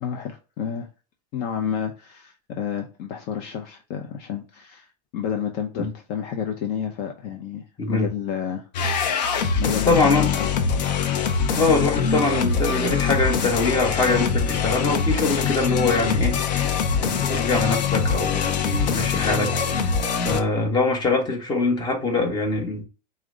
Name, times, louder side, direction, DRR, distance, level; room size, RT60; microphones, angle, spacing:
voice 1, 0.0-0.9 1.3-8.7 9.6-10.5, left 8 dB, 50° left, 0.6 m, -30 dB
sound 1, 8.7-20.4, left 6 dB, 85° left, 0.7 m, -23 dB
voice 2, 9.9-10.3 11.5-16.7 17.0-19.5 19.8-19.9 20.2-22.8, left 3 dB, 20° left, 1.2 m, -23 dB
4.8 x 2.1 x 3.6 m
supercardioid pair, 125°, 21 cm